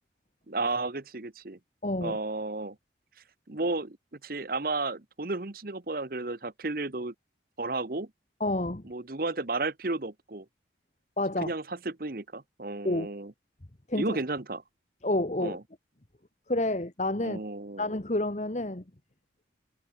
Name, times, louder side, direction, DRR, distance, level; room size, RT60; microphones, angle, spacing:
voice 1, 0.5-1.6 2.0-2.8 3.5-4.0 4.2-7.1 7.6-8.1 8.8-10.4 11.4-13.3 13.9-14.6 15.4-15.6 17.2-17.9, right 2 dB, 50° right, 1.1 m, -33 dB
voice 2, 1.8-2.2 8.4-8.8 11.2-11.5 12.8-13.1 13.9-14.2 15.0-15.6 16.5-17.4 17.8-18.8, left 1 dB, 40° left, 1.4 m, -29 dB
head